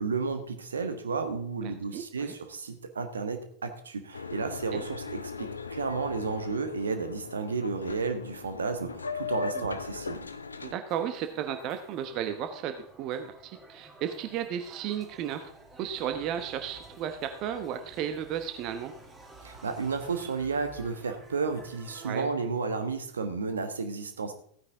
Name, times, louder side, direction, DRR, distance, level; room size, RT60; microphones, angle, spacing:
voice 1, 0.0-10.3 19.4-24.3, right 4 dB, 70° right, 8 dB, 1.3 m, -32 dB
voice 2, 1.6-2.3 4.7-4.8 9.5-9.6 10.6-15.5 15.8-18.9 22.0-22.3, right 9 dB, 40° right, 8 dB, 1.0 m, -34 dB
Boat Water vehicle, 4.1-10.7, left 5 dB, 75° left, 0.8 m, -38 dB
sound 1, 10.9-22.2, right 2 dB, 15° right, 2.9 m, -52 dB
15.5 x 9.6 x 3.6 m, 0.62 s
figure-of-eight pair, 90°, 0 cm